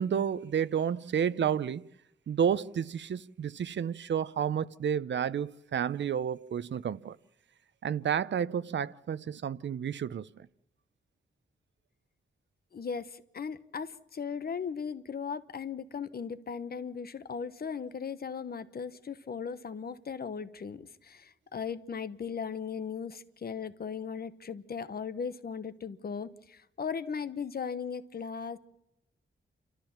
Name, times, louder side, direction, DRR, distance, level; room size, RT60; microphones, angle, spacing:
voice 1, 0.0-1.8 2.3-7.2 7.8-10.5, right 8 dB, 70° right, 0.7 m, -31 dB
voice 2, 12.7-28.6, left 6 dB, 55° left, 1.1 m, -37 dB
29.0 x 13.5 x 7.3 m
wide cardioid pair, 150°, 19 cm